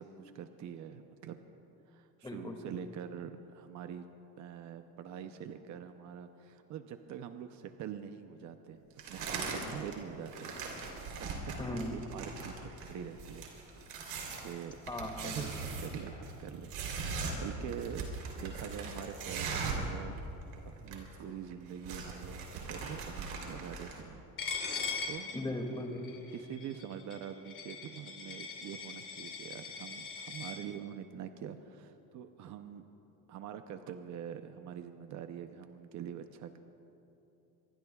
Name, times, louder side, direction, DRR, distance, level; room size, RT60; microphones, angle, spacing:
voice 1, 0.0-1.4 1.9-4.1 4.4-8.8 9.1-10.5 11.2-11.3 11.7-13.5 14.4-14.8 15.2-17.2 17.4-18.1 18.3-20.4 20.8-24.2 24.5-25.3 26.3-32.8 33.3-36.6, right 8 dB, 55° right, 7 dB, 0.7 m, -45 dB
voice 2, 2.2-2.6 11.6-11.9 14.9-15.5 25.3-26.1, left 1 dB, 15° left, 2 dB, 2.3 m, -38 dB
sound 1, 9.0-9.9 10.2-19.9 20.2-20.3 20.5-21.2 21.5-24.0, right 4 dB, 85° right, 3.6 m, -40 dB
Coin (dropping), 24.4-30.5, left 5 dB, 35° left, 3.8 m, -40 dB
26.0 x 22.5 x 2.4 m, 2.9 s
cardioid pair, 145°, 35 cm